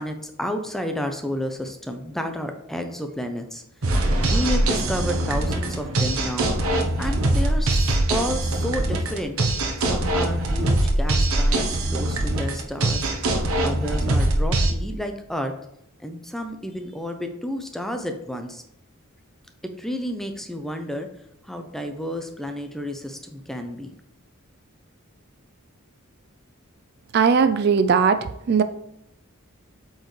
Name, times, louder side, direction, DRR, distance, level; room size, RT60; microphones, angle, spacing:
voice 1, 0.0-3.6 3.9-6.5 7.0-9.4 9.8-13.1 13.6-15.5 16.0-18.6 19.6-21.1 21.4-23.9, equal, ahead, 5 dB, 0.5 m, -31 dB
sound 1, 3.8-14.7, right 1 dB, 80° right, 0.9 m, -22 dB
voice 2, 27.1-28.6, right 6 dB, 50° right, 11 dB, 0.3 m, -19 dB
7.8 x 4.6 x 3.2 m, 0.80 s
head